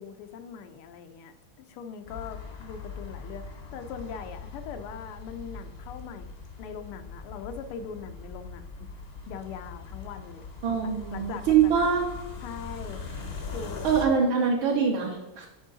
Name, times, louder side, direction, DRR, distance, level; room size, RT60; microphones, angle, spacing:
voice 1, 0.0-1.3 1.7-6.3 6.6-8.9 9.3-10.4 10.8-11.7 12.4-13.0 13.5-13.9, left 7 dB, 85° left, 8 dB, 1.6 m, -41 dB
sound 1, 2.1-14.1, left 4 dB, 50° left, 0.7 m, -41 dB
voice 2, 10.6-12.1 13.8-15.5, right 6 dB, 70° right, -3 dB, 1.7 m, -24 dB
6.3 x 5.6 x 3.8 m, 1.0 s
omnidirectional pair, 2.4 m